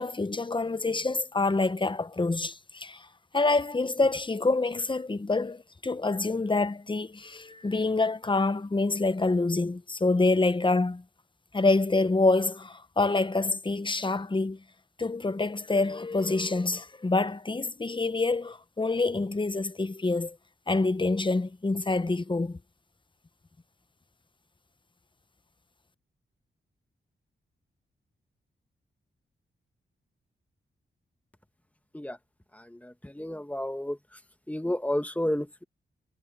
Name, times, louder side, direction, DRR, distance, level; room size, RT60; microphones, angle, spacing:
voice 1, 0.0-3.1 3.3-11.0 11.5-14.6 15.0-20.4 20.7-22.6, left 3 dB, 25° left, 0.9 m, -26 dB
voice 2, 32.5-34.0 34.5-35.6, left 1 dB, 5° left, 2.0 m, -31 dB
cardioid pair, 60°, 20 cm